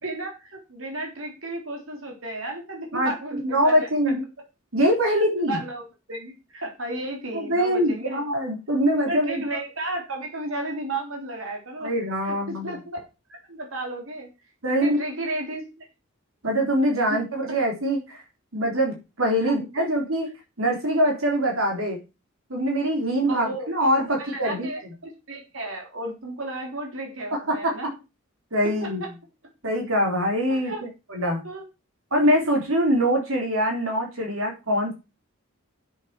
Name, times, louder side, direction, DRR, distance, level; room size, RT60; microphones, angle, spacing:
voice 1, 0.0-4.1 5.1-5.8 6.1-8.2 9.1-11.9 12.2-12.4 12.6-13.0 13.3-14.3 14.7-15.9 17.1-17.2 19.4-19.9 23.3-23.7 24.1-27.9 28.6-28.9 30.5-30.8 31.2-31.6, right 2 dB, 70° right, 1 dB, 3.6 m, -33 dB
voice 2, 3.4-4.2 4.7-5.6 7.3-9.4 11.8-12.8 14.6-15.1 16.4-18.2 18.5-20.3 20.6-22.0 22.5-24.7 27.3-27.9 28.5-29.0 29.6-30.7 31.1-31.4 32.1-34.9, equal, 90° right, 1 dB, 3.8 m, -23 dB
8.5 x 7.7 x 6.0 m, 0.28 s
head